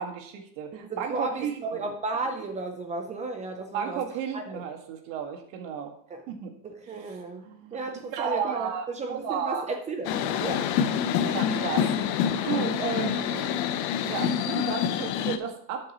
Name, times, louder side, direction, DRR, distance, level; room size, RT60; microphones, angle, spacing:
voice 1, 0.0-1.9 3.7-5.9 6.3-6.5 7.1-7.2 7.4-9.6 11.2-13.6 14.0-15.9, right 7 dB, 50° right, 3 dB, 1.9 m, -33 dB
voice 2, 0.7-4.0 4.3-4.6 6.1-6.2 6.6-7.4 7.7-10.7, right 3 dB, 15° right, 5 dB, 0.6 m, -34 dB
sound 1, 10.0-15.4, left 8 dB, 40° left, 0.8 m, -27 dB
12.5 x 6.9 x 3.0 m, 0.65 s
supercardioid pair, 145°, 48 cm